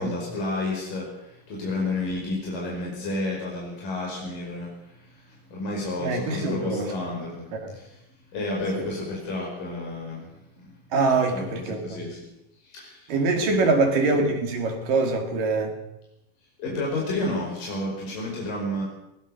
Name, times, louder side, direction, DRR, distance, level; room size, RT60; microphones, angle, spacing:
voice 1, 0.0-8.0 8.3-10.7 11.3-12.3 12.6-13.1 13.5-13.8 16.6-18.8, left 2 dB, 60° left, -3 dB, 6.9 m, -31 dB
voice 2, 6.0-6.9 7.5-7.8 8.8-8.9 10.9-12.0 13.1-15.8, right 3 dB, 65° right, 4 dB, 4.2 m, -24 dB
21.0 x 19.0 x 6.6 m, 0.88 s
omnidirectional pair, 4.3 m